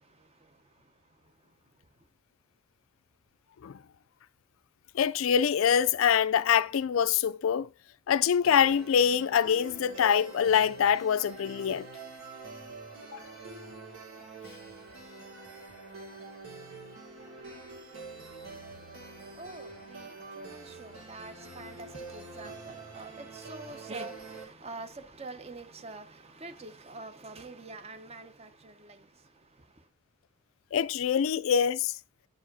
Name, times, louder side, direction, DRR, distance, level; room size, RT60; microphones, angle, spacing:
voice 1, 4.9-7.7 8.1-11.9 13.1-13.2 30.7-31.9, left 8 dB, 75° left, 0.4 m, -25 dB
sound 1, 8.4-24.4, right 3 dB, 90° right, 3.3 m, -46 dB
voice 2, 19.4-29.0, right 3 dB, 30° right, 0.7 m, -45 dB
10.0 x 4.8 x 4.0 m
head